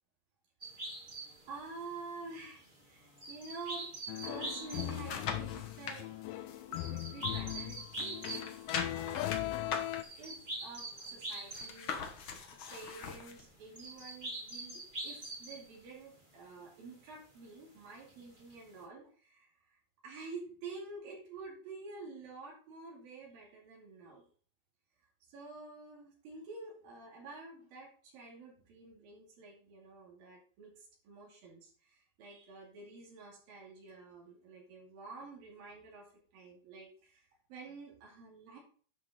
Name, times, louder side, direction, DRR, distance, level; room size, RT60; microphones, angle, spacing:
sound 1, 0.6-8.6 9.0-9.5 9.8-12.9 13.2-16.2 17.4-17.5 17.8-18.6, right 2 dB, 20° right, 1.6 m, -44 dB
voice 1, 1.5-3.9 4.3-9.8 10.2-12.0 12.7-19.8 20.0-24.3 25.3-38.6, right 3 dB, 80° right, -2 dB, 4.4 m, -49 dB
sound 2, 4.1-10.0, left 16 dB, 80° left, 2.1 m, -39 dB
sound 3, 4.4-6.0 6.5-7.6 7.9-13.4 13.9-14.0, left 5 dB, 60° left, 1.4 m, -42 dB
11.0 x 6.2 x 4.3 m, 0.43 s
omnidirectional pair, 4.0 m